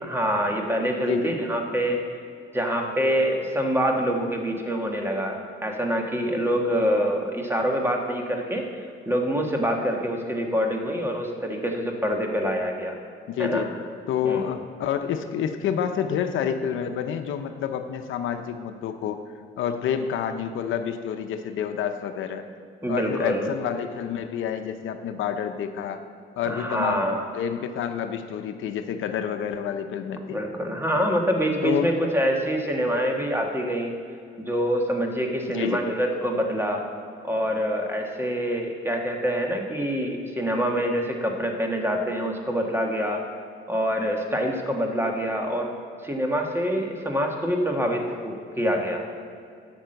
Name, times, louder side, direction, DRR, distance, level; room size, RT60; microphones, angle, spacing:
voice 1, 0.0-2.0 2.5-8.7 9.0-12.9 13.4-13.7 14.2-14.5 22.8-23.5 26.4-27.2 30.3-33.9 34.4-36.8 37.2-43.2 43.7-45.7 46.0-49.0, equal, 10° right, 2 dB, 1.6 m, -25 dB
voice 2, 1.1-1.4 13.3-13.7 14.1-19.2 19.6-22.4 22.9-26.0 26.4-27.0 27.3-30.4 31.6-31.9 35.5-35.8, left 8 dB, 80° left, 7 dB, 0.7 m, -28 dB
10.0 x 6.1 x 7.8 m, 2.2 s
cardioid pair, 90°, 20 cm